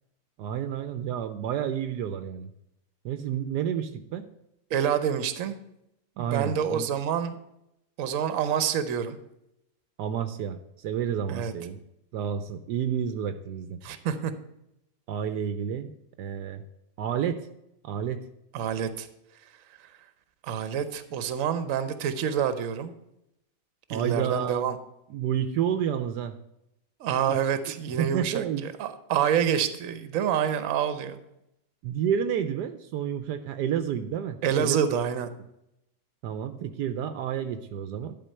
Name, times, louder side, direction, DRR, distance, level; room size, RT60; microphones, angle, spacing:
voice 1, 0.4-2.5 3.0-4.3 6.2-6.9 10.0-11.8 12.1-13.8 15.1-15.9 16.2-16.6 17.0-17.5 17.8-18.2 23.9-24.6 25.1-26.4 27.3-27.4 27.9-28.7 31.8-34.8 36.2-38.2, right 9 dB, 75° right, 10 dB, 1.2 m, -30 dB
voice 2, 4.7-5.6 6.2-7.4 8.0-9.2 11.3-11.5 13.8-14.3 18.5-19.1 20.4-22.9 23.9-24.8 27.0-28.4 28.8-31.2 34.4-35.3, right 8 dB, 55° right, 11 dB, 1.1 m, -27 dB
11.5 x 4.4 x 6.5 m, 0.82 s
omnidirectional pair, 1.9 m